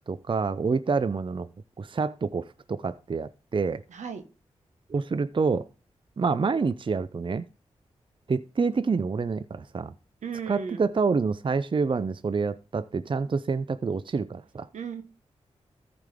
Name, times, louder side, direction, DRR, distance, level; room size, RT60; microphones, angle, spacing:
voice 1, 0.1-1.5 1.8-3.8 4.9-5.7 6.2-7.5 8.3-9.9 10.5-14.7, right 4 dB, 45° right, 0.5 m, -27 dB
voice 2, 3.9-4.2 10.2-10.9 14.7-15.0, right 6 dB, 85° right, 1.4 m, -35 dB
14.0 x 5.0 x 3.5 m
cardioid pair, 40°, 12 cm